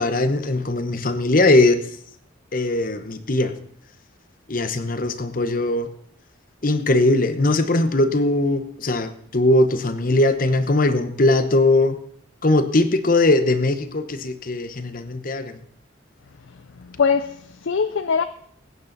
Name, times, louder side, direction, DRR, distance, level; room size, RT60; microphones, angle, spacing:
voice 1, 0.0-1.8 2.5-3.6 4.5-5.9 6.6-12.0 12.4-15.6, left 2 dB, 45° left, 1.0 m, -20 dB
voice 2, 16.4-18.2, left 5 dB, 70° left, 0.5 m, -23 dB
21.0 x 9.5 x 4.0 m
head